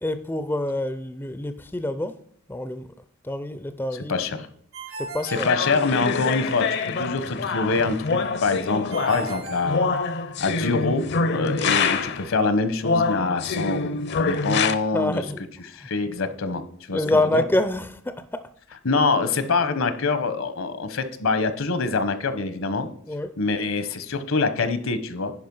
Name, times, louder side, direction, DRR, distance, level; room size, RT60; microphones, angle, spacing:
voice 1, 0.0-2.1 2.5-2.9 3.2-4.2 5.0-5.5 14.9-15.4 16.9-18.4 23.1-23.4, left 1 dB, 10° left, 0.4 m, -26 dB
voice 2, 4.1-4.5 5.2-9.9 10.4-15.2 15.7-16.6 16.9-17.4 18.8-22.9 23.4-25.3, left 3 dB, 70° left, 1.0 m, -25 dB
Ringtone, 4.7-6.4 8.9-10.5, right 2 dB, 80° right, 4.2 m, -38 dB
sound 1, 5.3-12.3 12.8-14.7, left 4 dB, 55° left, 0.6 m, -26 dB
10.5 x 5.0 x 5.4 m
head